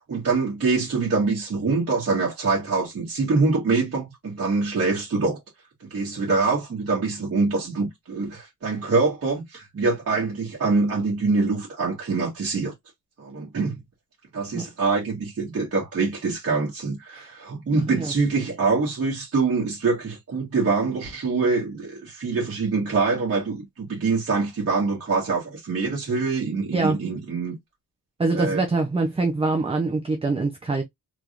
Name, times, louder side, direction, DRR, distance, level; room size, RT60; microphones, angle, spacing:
voice 1, 0.1-5.4 5.8-12.7 13.2-13.8 14.3-27.5 28.3-28.6, right 4 dB, 40° right, 1.4 m, -24 dB
voice 2, 28.2-30.8, right 3 dB, 15° right, 0.5 m, -24 dB
3.5 x 3.1 x 2.4 m
wide cardioid pair, 155°, 36 cm